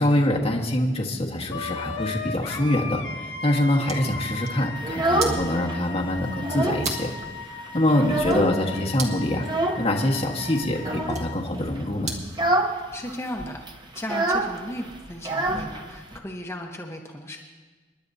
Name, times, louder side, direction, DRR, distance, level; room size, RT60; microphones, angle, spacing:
voice 1, 0.0-7.1 7.7-9.5 9.8-12.1, left 1 dB, 35° left, -2 dB, 1.4 m, -24 dB
Wind instrument woodwind instrument, 1.5-11.4, left 4 dB, 90° left, 1.4 m, -37 dB
sound 1, 3.6-12.4, right 3 dB, 40° right, 1.7 m, -40 dB
Child speech kid speaking, 4.8-5.8 6.1-6.9 7.2-7.3 7.7-8.8 9.4-9.9 10.8-11.3 11.7-11.9 12.3-12.8 13.1-13.2 13.4-16.2, right 2 dB, 25° right, 0.9 m, -26 dB
voice 2, 12.9-13.6 13.9-17.4, equal, 15° left, 0 dB, 0.9 m, -35 dB
28.5 x 11.0 x 2.7 m, 1.3 s
head